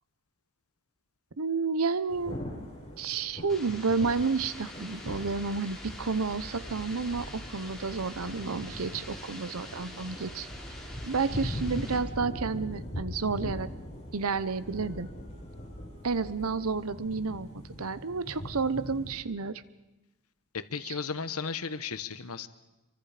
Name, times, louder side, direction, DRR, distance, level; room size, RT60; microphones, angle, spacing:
voice 1, 1.4-2.4 3.0-10.5 11.0-13.7 14.1-15.1 16.0-17.5 17.8-19.6 20.9-21.0, right 4 dB, 70° right, 14 dB, 0.9 m, -31 dB
Thunder / Rain, 2.1-19.1, equal, 30° left, 5.8 m, -41 dB
sound 1, 3.5-12.0, left 1 dB, ahead, 5.2 m, -44 dB
voice 2, 20.5-22.5, left 5 dB, 75° left, 12 dB, 1.1 m, -35 dB
27.5 x 24.5 x 5.1 m, 1.0 s
head